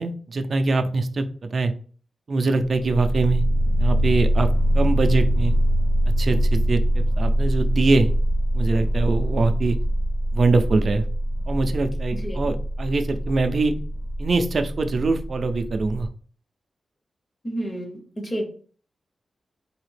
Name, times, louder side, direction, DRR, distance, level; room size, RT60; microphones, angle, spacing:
voice 1, 0.0-1.7 2.3-3.4 3.8-5.5 6.2-8.1 8.5-9.8 10.3-11.0 11.5-13.7 14.2-16.1, right 3 dB, 45° right, 7 dB, 0.4 m, -23 dB
sound 1, 2.7-16.1, equal, 75° left, 1.5 m, -23 dB
voice 2, 12.1-12.5 17.4-18.4, right 1 dB, 25° left, 3 dB, 0.8 m, -30 dB
4.1 x 2.7 x 3.2 m, 0.43 s
wide cardioid pair, 180°, 0 cm